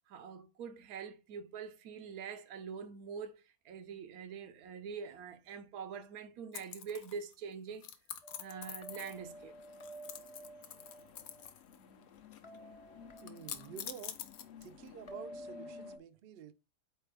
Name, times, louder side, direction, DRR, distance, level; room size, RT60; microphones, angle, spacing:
voice 1, 0.1-7.9 8.4-9.5 12.6-12.7, right 6 dB, 90° right, 1.1 m, -45 dB
sound 1, 6.5-7.3 7.8-9.3 9.6-11.8 12.0-12.6 13.2-14.9, left 9 dB, 90° left, 1.1 m, -46 dB
sound 2, 8.2-11.5 12.4-13.7 15.1-16.0, right 1 dB, 40° left, 0.4 m, -51 dB
sound 3, 8.9-16.0, left 8 dB, 60° left, 0.8 m, -56 dB
voice 2, 13.2-14.2 14.6-16.5, right 9 dB, 70° right, 0.5 m, -50 dB
4.4 x 3.3 x 3.3 m
omnidirectional pair, 1.5 m